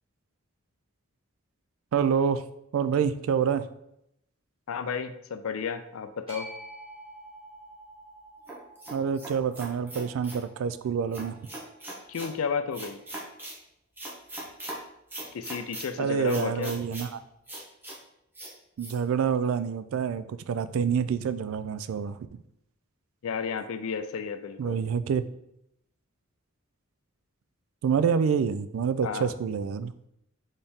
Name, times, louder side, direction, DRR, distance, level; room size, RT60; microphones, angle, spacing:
voice 1, 1.9-2.4 2.7-3.6 8.9-11.4 16.0-17.2 18.8-22.3 24.6-25.2 27.8-29.9, right 7 dB, 75° right, 13 dB, 0.3 m, -27 dB
voice 2, 4.7-6.5 12.1-13.0 15.3-16.7 23.2-24.8 29.0-29.3, left 6 dB, 80° left, 10 dB, 0.4 m, -32 dB
sound 1, 6.3-12.5, right 1 dB, 25° right, 1.4 m, -49 dB
sound 2, 8.5-10.4 11.1-12.3 12.7-13.6 14.0-14.8 15.1-15.9 16.3-17.1 17.5-18.0 18.3-18.5 18.8-18.9, right 1 dB, 10° right, 0.9 m, -40 dB
4.3 x 3.3 x 3.6 m, 0.78 s
head